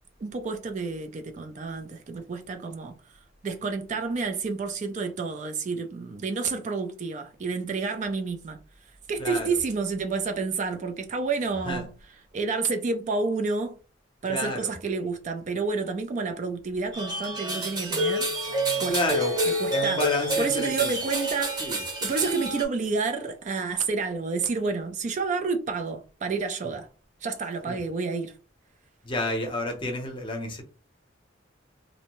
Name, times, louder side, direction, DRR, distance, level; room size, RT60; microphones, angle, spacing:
voice 1, 0.2-3.0 3.4-8.6 9.1-11.8 12.3-13.8 14.2-18.3 18.8-19.0 19.6-20.0 20.4-26.9 27.2-28.4, right 4 dB, 40° right, 0.3 m, -29 dB
voice 2, 9.2-9.6 11.6-11.8 14.3-14.7 18.9-19.3 19.7-20.9 21.6-21.8 27.7-27.8 29.0-30.6, left 1 dB, 25° left, 0.7 m, -30 dB
sound 1, 16.9-22.6, right 1 dB, 20° right, 0.8 m, -28 dB
2.6 x 2.1 x 2.9 m
head